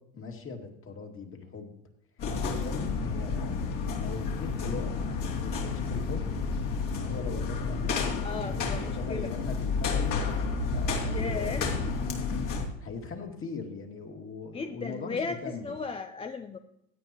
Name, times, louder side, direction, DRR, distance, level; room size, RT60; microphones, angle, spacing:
voice 1, 0.1-1.7 2.4-3.5 3.9-4.9 5.2-6.2 6.9-10.1 10.7-11.6 12.8-15.7, left 4 dB, 30° left, 3 dB, 2.3 m, -40 dB
sound 1, 2.2-12.7, left 4 dB, 50° left, 2.8 m, -30 dB
voice 2, 8.2-9.3 11.1-11.6 14.5-16.6, left 4 dB, 15° left, 7 dB, 0.5 m, -35 dB
16.0 x 9.3 x 2.9 m, 0.78 s
hypercardioid pair, 95°, 42 cm